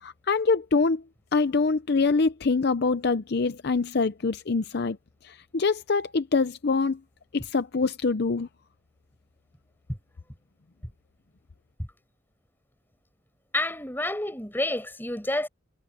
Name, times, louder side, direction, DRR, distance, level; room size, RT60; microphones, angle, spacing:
voice 1, 0.0-1.0 1.3-5.0 5.2-7.0 7.3-8.5, left 4 dB, 55° left, 0.6 m, -25 dB
voice 2, 13.5-15.5, left 1 dB, 10° left, 5.6 m, -29 dB
head